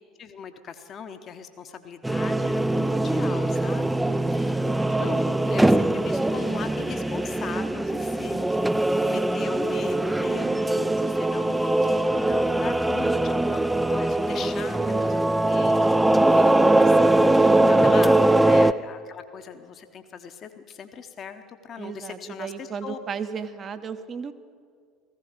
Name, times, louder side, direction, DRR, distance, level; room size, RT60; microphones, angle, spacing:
voice 1, 0.2-4.0 4.3-8.4 9.0-23.0, left 7 dB, 40° left, 8 dB, 0.9 m, -39 dB
sound 1, 2.0-18.7, right 1 dB, 10° right, 0.4 m, -21 dB
voice 2, 4.0-4.4 10.4-11.0 14.8-15.3 21.8-24.3, right 6 dB, 35° right, 10 dB, 0.9 m, -36 dB
15.5 x 15.5 x 5.1 m, 2.1 s
figure-of-eight pair, 65°, 0 cm